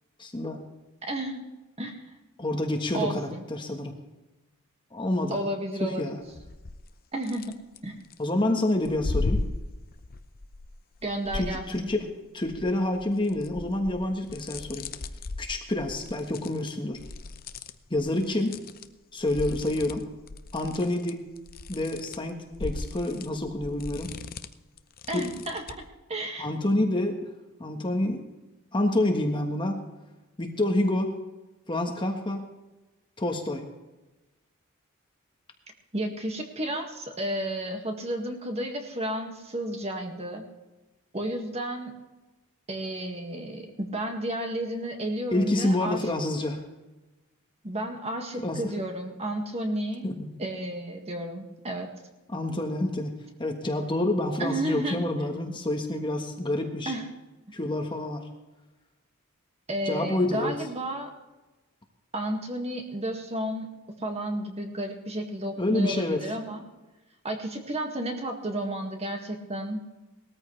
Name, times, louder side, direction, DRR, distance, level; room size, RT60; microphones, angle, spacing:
voice 1, 0.2-0.6 2.4-3.9 4.9-5.4 5.8-6.2 8.2-9.4 11.3-14.9 15.4-17.0 17.9-18.6 19.1-20.0 20.5-21.2 21.7-24.1 25.1-25.3 26.4-27.3 27.6-28.3 28.7-29.8 30.4-31.2 31.7-32.5 33.2-33.6 45.3-46.6 48.4-48.7 50.0-50.3 52.3-53.1 53.4-56.9 57.5-58.2 59.8-60.6 65.6-66.3, left 1 dB, 20° left, 3 dB, 1.4 m, -28 dB
voice 2, 1.0-1.4 1.8-2.0 2.9-3.4 5.3-6.2 7.1-7.5 7.8-8.0 11.0-11.9 25.1-25.8 26.1-26.5 35.9-40.4 41.1-41.9 42.7-46.0 47.6-50.1 50.4-51.9 54.4-55.2 56.9-57.1 59.7-61.1 62.1-63.7 64.0-66.6 67.2-69.8, right 1 dB, 30° right, 3 dB, 1.9 m, -32 dB
sound 1, 6.3-6.9 7.2-8.2 8.8-12.1 12.4-18.9 19.1-25.9, left 2 dB, 45° left, 0.7 m, -37 dB
19.5 x 14.0 x 3.3 m, 1.1 s
head